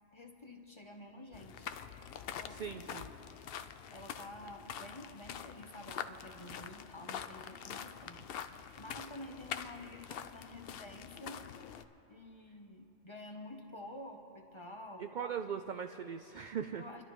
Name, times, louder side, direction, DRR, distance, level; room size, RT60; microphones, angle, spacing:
voice 1, 0.1-1.7 2.4-3.0 3.9-8.2 8.5-11.4 12.1-15.1 16.7-17.0, left 1 dB, 25° left, 3 dB, 0.7 m, -50 dB
sound 1, 1.3-11.8, left 8 dB, 60° left, 0.6 m, -45 dB
voice 2, 2.5-3.1 15.1-16.8, right 7 dB, 75° right, 6 dB, 0.4 m, -39 dB
26.5 x 11.5 x 3.1 m, 2.8 s
omnidirectional pair, 1.3 m